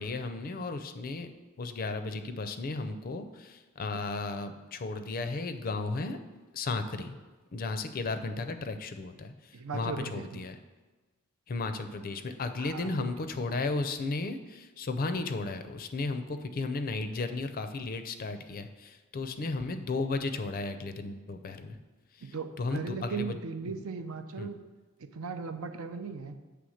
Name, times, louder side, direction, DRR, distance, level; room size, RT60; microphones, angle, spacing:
voice 1, 0.0-1.3 1.6-6.2 6.5-7.2 7.5-9.3 9.7-10.5 11.5-21.8 22.6-23.4 23.7-23.8 24.4-24.5, left 3 dB, 40° left, 9 dB, 0.5 m, -34 dB
voice 2, 9.5-10.4 12.6-13.1 22.2-24.6 25.0-26.4, right 5 dB, 75° right, 8 dB, 0.6 m, -38 dB
7.7 x 3.4 x 6.3 m, 1.2 s
head